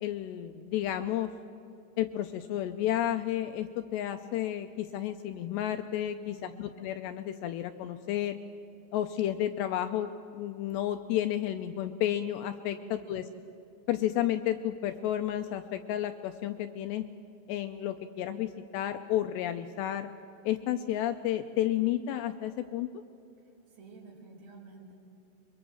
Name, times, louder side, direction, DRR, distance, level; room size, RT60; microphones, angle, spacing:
voice 1, 0.0-1.3 2.0-8.4 8.9-13.3 13.9-17.1 17.5-20.1 20.4-22.9, left 12 dB, 80° left, 8 dB, 2.5 m, -31 dB
voice 2, 6.2-6.7 12.8-13.1 23.4-24.9, right 4 dB, 60° right, -1 dB, 6.2 m, -51 dB
24.0 x 22.5 x 7.8 m, 2.7 s
omnidirectional pair, 5.6 m